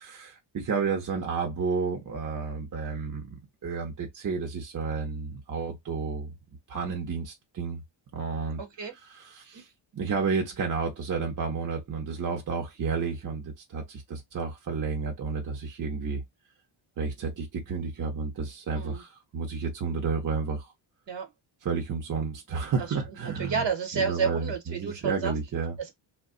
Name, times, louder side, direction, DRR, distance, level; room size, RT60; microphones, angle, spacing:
voice 1, 0.0-3.3 3.6-6.4 6.7-7.8 8.1-8.6 9.1-16.2 17.0-20.7 21.6-23.6 23.9-25.8, right 5 dB, 40° right, 0.9 m, -31 dB
voice 2, 8.6-8.9 18.7-19.0 21.1-21.3 23.2-25.3 25.8-25.9, right 6 dB, 60° right, 1.2 m, -30 dB
2.3 x 2.2 x 3.6 m
cardioid pair, 115°, 50 cm